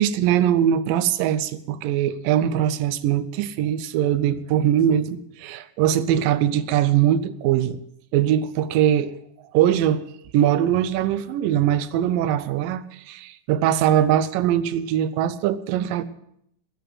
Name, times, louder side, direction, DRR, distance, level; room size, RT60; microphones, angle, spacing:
voice 1, 0.0-7.8 8.1-9.2 9.5-10.1 10.3-16.0, right 10 dB, 85° right, 2.4 m, -21 dB
13.5 x 10.0 x 7.7 m
omnidirectional pair, 4.0 m